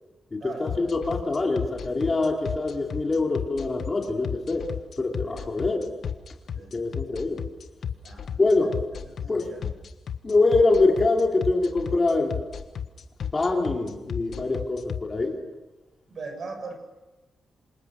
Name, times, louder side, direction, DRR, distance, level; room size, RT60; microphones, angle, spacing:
voice 1, 0.4-4.7 5.0-5.9 6.7-7.4 8.4-8.8 9.3-9.5 10.2-12.4 13.3-15.4, left 3 dB, 25° left, 1 dB, 3.3 m, -24 dB
sound 1, 0.7-15.0, left 8 dB, 55° left, 1.4 m, -32 dB
voice 2, 9.2-9.7 16.1-16.7, right 4 dB, 45° right, 5 dB, 6.9 m, -39 dB
28.5 x 27.0 x 6.6 m, 1.1 s
wide cardioid pair, 165°, 0 cm